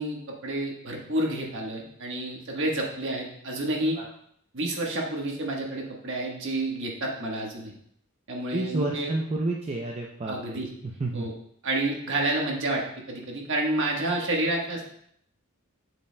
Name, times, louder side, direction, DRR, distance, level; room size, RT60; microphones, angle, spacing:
voice 1, 0.0-4.0 4.5-7.7 8.3-9.1 10.3-10.7 11.1-11.3 11.6-14.8, right 1 dB, 60° right, 0 dB, 1.3 m, -29 dB
voice 2, 8.5-11.3, right 2 dB, 30° right, 0 dB, 0.5 m, -30 dB
7.2 x 6.6 x 2.2 m, 0.69 s
head